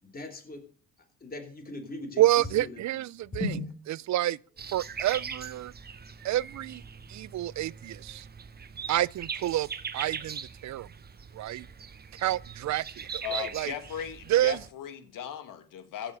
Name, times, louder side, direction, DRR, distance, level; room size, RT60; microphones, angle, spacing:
voice 1, 0.0-0.6 1.2-2.3 2.5-2.8 3.3-3.7 4.0-4.1, left 2 dB, 30° left, 3.4 m, -37 dB
voice 2, 2.2-3.5 4.1-4.4 4.7-5.7 6.2-6.8 7.1-8.3 8.9-9.7 9.9-10.9 11.3-11.7 12.2-13.7 14.3-14.6, right 14 dB, 60° right, 0.5 m, -28 dB
sound 1, 4.6-14.7, right 6 dB, 30° right, 1.0 m, -41 dB
voice 3, 13.2-16.2, left 9 dB, 80° left, 2.1 m, -37 dB
15.5 x 7.0 x 7.0 m
cardioid pair, 130°, 32 cm